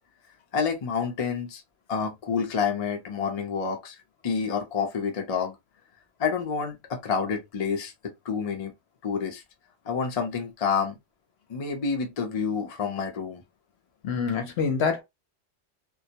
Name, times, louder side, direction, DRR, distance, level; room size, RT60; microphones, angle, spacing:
voice 1, 0.5-1.6 1.9-4.0 4.2-5.6 6.2-7.9 8.2-8.7 9.0-9.4 9.8-11.0 11.5-13.4, left 6 dB, 45° left, 0.5 m, -28 dB
voice 2, 14.0-15.0, left 5 dB, 65° left, 0.9 m, -26 dB
2.2 x 2.1 x 2.7 m
omnidirectional pair, 1.2 m